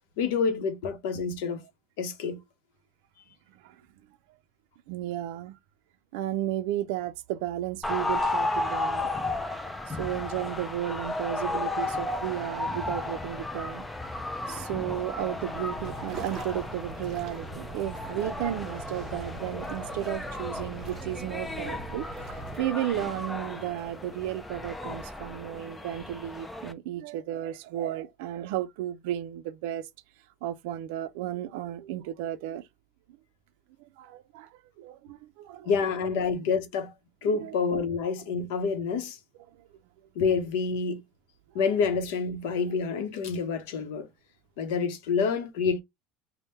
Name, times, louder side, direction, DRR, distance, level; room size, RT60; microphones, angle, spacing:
voice 1, 0.2-1.6 2.0-2.4 35.6-36.9 37.2-39.2 40.2-41.0 41.5-44.1 44.6-45.8, left 5 dB, 75° left, 0.7 m, -28 dB
voice 2, 4.9-5.6 6.1-9.1 9.9-13.9 14.5-22.1 22.6-29.9 30.4-32.7 33.8-35.7 37.3-37.5 39.6-39.7, right 12 dB, 70° right, 0.4 m, -33 dB
sound 1, 7.8-26.7, left 2 dB, 5° left, 0.3 m, -34 dB
sound 2, 15.5-22.6, right 4 dB, 25° right, 0.9 m, -42 dB
3.5 x 2.1 x 4.0 m
cardioid pair, 180°, 0 cm